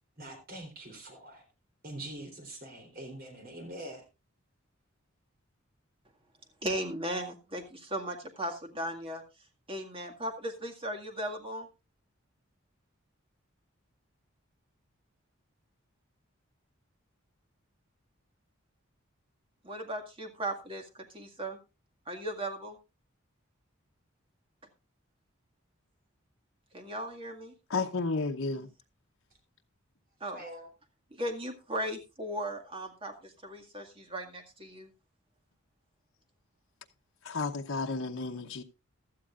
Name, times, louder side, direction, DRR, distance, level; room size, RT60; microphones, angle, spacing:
voice 1, 0.2-1.4 1.8-4.1 30.3-30.7, right 1 dB, 45° right, 3.7 m, -44 dB
voice 2, 6.6-9.2 9.7-11.7 19.6-21.6 22.1-22.8 26.7-27.5 30.2-30.4 31.1-34.9, right 1 dB, 25° right, 2.0 m, -37 dB
voice 3, 27.7-28.7 37.2-38.6, left 3 dB, 80° left, 0.9 m, -32 dB
16.0 x 12.5 x 2.5 m
head